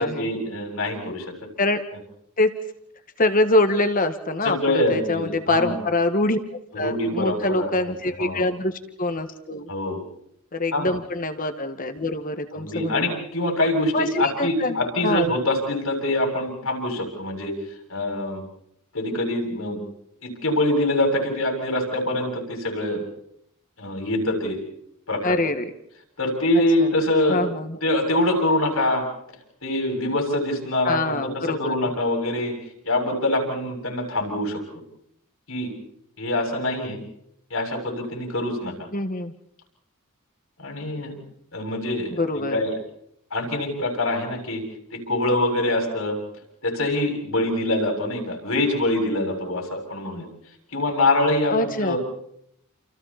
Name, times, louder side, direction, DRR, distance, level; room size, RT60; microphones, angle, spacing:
voice 1, 0.0-1.3 4.4-5.8 6.7-7.7 8.2-8.5 9.7-10.0 10.7-10.9 12.5-17.5 17.9-18.4 18.9-19.8 20.2-23.0 23.8-24.6 25.1-25.4 26.2-27.4 27.8-29.0 29.6-32.5 32.8-34.8 35.5-35.7 36.2-37.0 37.5-38.9 40.6-41.2 41.5-42.7 43.3-44.6 44.9-46.2 46.6-50.3 50.7-52.0, left 1 dB, 75° left, 2 dB, 7.3 m, -24 dB
voice 2, 3.2-6.4 6.8-8.7 9.0-9.7 10.5-13.1 13.9-15.3 25.2-25.7 26.8-26.9 27.3-27.8 30.9-31.8 38.9-39.3 42.1-42.6 51.5-52.0, left 2 dB, 40° left, 9 dB, 1.8 m, -24 dB
29.5 x 29.0 x 4.3 m, 0.72 s
head